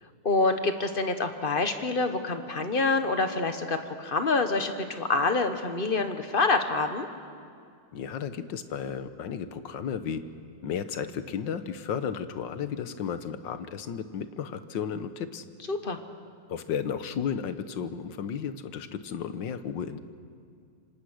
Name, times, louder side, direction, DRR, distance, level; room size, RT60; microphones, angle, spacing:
voice 1, 0.2-7.1 15.7-16.0, left 3 dB, 30° left, 7 dB, 1.3 m, -26 dB
voice 2, 7.9-10.2 10.6-15.4 16.5-20.0, left 7 dB, 75° left, 11 dB, 1.7 m, -33 dB
26.5 x 25.5 x 6.5 m, 2.3 s
omnidirectional pair, 2.0 m